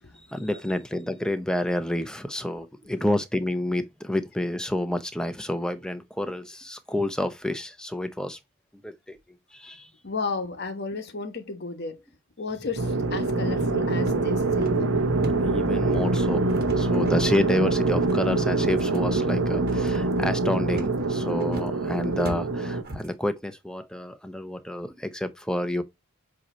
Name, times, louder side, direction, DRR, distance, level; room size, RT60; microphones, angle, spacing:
voice 1, 0.3-8.4 8.8-9.2 9.5-9.9 15.4-25.8, left 1 dB, 5° left, 0.6 m, -29 dB
voice 2, 10.0-12.0 12.4-15.0, left 4 dB, 55° left, 1.2 m, -33 dB
sound 1, 12.8-22.8, right 2 dB, 80° right, 1.0 m, -24 dB
sound 2, 14.0-23.2, right 1 dB, 50° right, 1.4 m, -40 dB
7.6 x 2.9 x 4.3 m
head